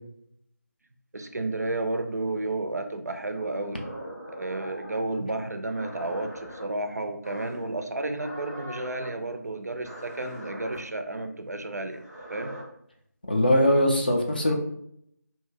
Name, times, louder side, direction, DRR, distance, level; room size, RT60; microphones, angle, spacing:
voice 1, 1.1-3.9 4.3-12.0 12.3-12.5, right 2 dB, 65° right, 7 dB, 0.4 m, -32 dB
sound 1, 3.3-5.0 5.7-6.6 7.2-7.7 8.1-9.1 9.8-10.8 11.9-12.6, equal, ahead, 0.7 m, -41 dB
voice 2, 13.3-14.5, left 1 dB, 30° left, 1 dB, 0.4 m, -21 dB
2.6 x 2.1 x 3.7 m, 0.71 s
figure-of-eight pair, 165°, 10 cm